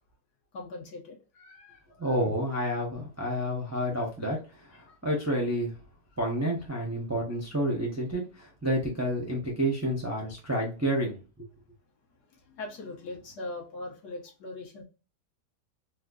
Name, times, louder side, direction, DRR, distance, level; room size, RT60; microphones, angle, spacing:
voice 1, 0.5-2.2 4.7-5.0 12.3-14.8, left 2 dB, 65° left, -1 dB, 1.6 m, -41 dB
voice 2, 2.0-5.7 6.2-11.5, equal, 15° right, -2 dB, 0.6 m, -30 dB
4.2 x 2.4 x 2.5 m, 0.33 s
omnidirectional pair, 1.9 m